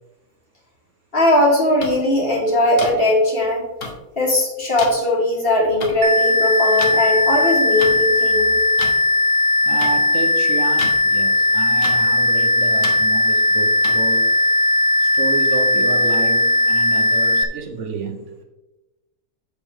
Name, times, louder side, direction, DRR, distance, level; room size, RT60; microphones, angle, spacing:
voice 1, 1.1-3.6 4.2-8.6, left 1 dB, 35° left, 2.6 m, -19 dB
sound 1, 1.8-1.9 2.8-2.9 3.8-3.9 4.8-4.9 5.8-5.9 6.8-6.9 7.8-7.9 8.8-8.9 9.8-9.9 10.8-11.0 11.8-11.9 12.8-12.9 13.8-13.9, left 4 dB, 50° left, 1.5 m, -29 dB
sound 2, 6.0-17.4, left 1 dB, 80° right, 1.5 m, -17 dB
voice 2, 9.6-14.3 15.0-18.4, right 5 dB, 50° right, 1.1 m, -30 dB
8.2 x 7.7 x 3.6 m
omnidirectional pair, 1.7 m